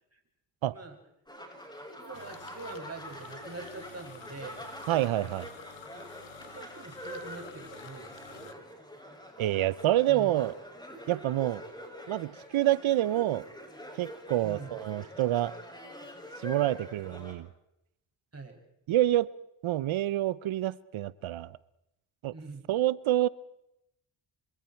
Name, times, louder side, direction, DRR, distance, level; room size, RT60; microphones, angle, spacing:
sound 1, 1.3-17.3, equal, 10° left, 7.3 m, -45 dB
voice 1, 2.0-4.7 5.9-6.1 6.4-8.6 10.1-10.3 14.4-14.8 18.3-18.6 22.3-22.7, right 3 dB, 30° right, 2 dB, 7.1 m, -44 dB
sound 2, 2.1-8.5, left 8 dB, 65° left, 2.0 m, -51 dB
voice 2, 4.9-5.5 9.4-10.5 11.1-11.6 12.1-13.4 13.9-15.5 16.4-17.5 18.9-19.3 19.6-21.6 22.2-22.3 22.7-23.3, right 14 dB, 80° right, 19 dB, 0.9 m, -27 dB
26.5 x 25.5 x 4.5 m, 0.82 s
cardioid pair, 65°, 47 cm